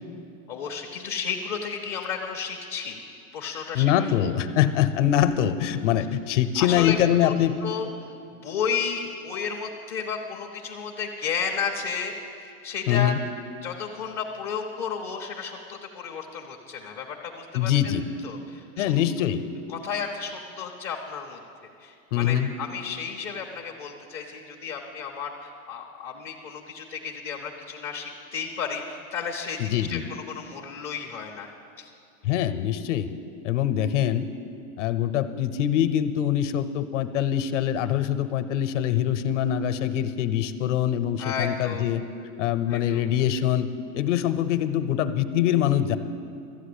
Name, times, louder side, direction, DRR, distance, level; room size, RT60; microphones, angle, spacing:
voice 1, 0.5-3.1 3.3-4.1 6.6-7.0 7.2-13.1 13.6-17.9 18.2-18.9 19.7-21.4 21.8-31.5 31.8-31.9 41.2-41.9 42.7-43.0, left 6 dB, 15° left, -2 dB, 0.4 m, -33 dB
voice 2, 3.7-7.6 12.9-13.2 17.5-18.1 18.8-19.4 22.1-22.5 29.6-30.1 32.2-33.1 33.4-34.3 34.8-42.0 42.4-43.7 43.9-46.0, left 10 dB, 55° left, 11 dB, 0.8 m, -24 dB
13.5 x 8.2 x 8.3 m, 2.5 s
supercardioid pair, 165°, 43 cm